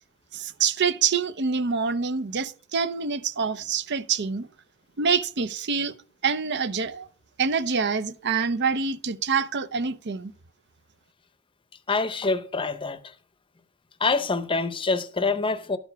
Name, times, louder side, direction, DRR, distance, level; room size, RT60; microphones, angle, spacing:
voice 1, 0.3-4.5 5.0-5.9 6.2-7.1 7.4-10.3, right 5 dB, 55° right, 0.6 m, -26 dB
voice 2, 11.9-13.1 14.0-15.8, left 4 dB, 25° left, 0.7 m, -26 dB
12.0 x 6.9 x 4.6 m
head